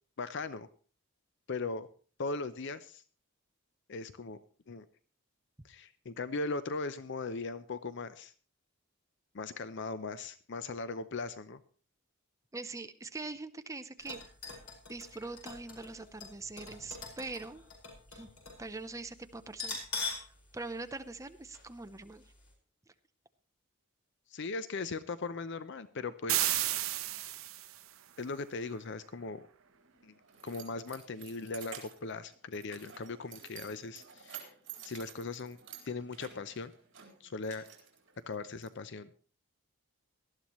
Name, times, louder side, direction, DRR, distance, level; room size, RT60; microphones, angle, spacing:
voice 1, 0.2-0.7 1.5-1.9 2.2-3.0 3.9-4.4 4.7-4.9 5.6-8.3 9.3-11.6 24.3-26.7 28.2-29.5 30.0-30.1 30.4-34.5 34.8-35.6 35.9-36.7 37.2-37.7 38.3-39.1, left 3 dB, 55° left, 13 dB, 0.6 m, -39 dB
voice 2, 12.5-14.6 14.9-17.6 18.1-18.3 18.6-20.2 20.5-22.2, right 3 dB, 15° right, 10 dB, 0.6 m, -43 dB
sound 1, 14.0-18.7 18.9-19.0 19.5-20.3 20.7-20.8 21.5-21.7 22.1-22.2, left 4 dB, 85° left, 5.4 m, -42 dB
sound 2, 26.3-27.8, right 15 dB, 75° right, 0.7 m, -32 dB
Keys jangling, 29.6-38.7, right 8 dB, 60° right, 3.8 m, -51 dB
18.5 x 13.0 x 3.0 m, 0.40 s
head